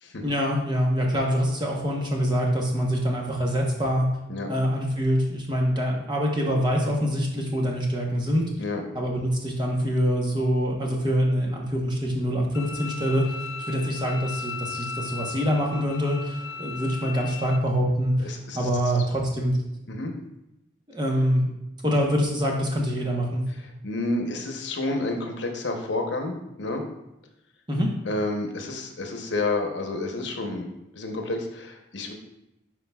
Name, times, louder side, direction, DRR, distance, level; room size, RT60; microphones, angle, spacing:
voice 1, 0.2-4.0 4.5-8.4 8.9-13.2 13.7-19.6 20.9-21.5 21.8-23.4 27.7-27.9, equal, 25° right, -1 dB, 1.0 m, -25 dB
Bowed string instrument, 12.5-17.6, left 5 dB, 85° left, 0.4 m, -37 dB
voice 2, 18.2-18.7 19.9-20.1 23.6-26.8 28.0-30.7 30.9-32.1, left 2 dB, 70° left, 3 dB, 0.9 m, -30 dB
9.9 x 4.6 x 2.3 m, 0.91 s
head